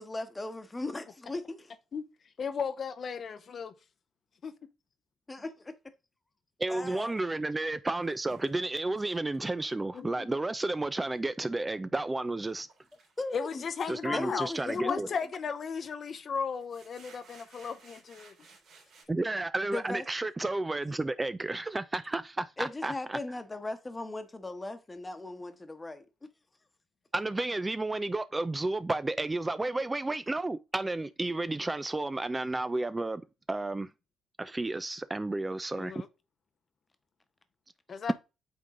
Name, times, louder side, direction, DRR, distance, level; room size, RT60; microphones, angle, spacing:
voice 1, 0.0-1.7 5.3-5.7 6.7-7.1 13.2-13.6 14.1-15.1 19.7-20.0 22.6-26.1, left 2 dB, 20° left, 1.1 m, -38 dB
voice 2, 2.4-3.7 4.4-4.5 9.9-10.3 13.3-18.3 35.8-36.1 37.9-38.1, left 6 dB, 50° left, 0.7 m, -35 dB
voice 3, 6.6-12.7 13.9-15.1 19.1-23.2 27.1-33.2 33.5-33.9 34.4-36.0, right 2 dB, 20° right, 0.4 m, -32 dB
sound 1, 7.1-11.4 12.0-14.4 14.7-15.3 15.6-19.0, right 4 dB, 75° right, 3.0 m, -59 dB
8.6 x 3.7 x 3.7 m
cardioid pair, 90°, 0 cm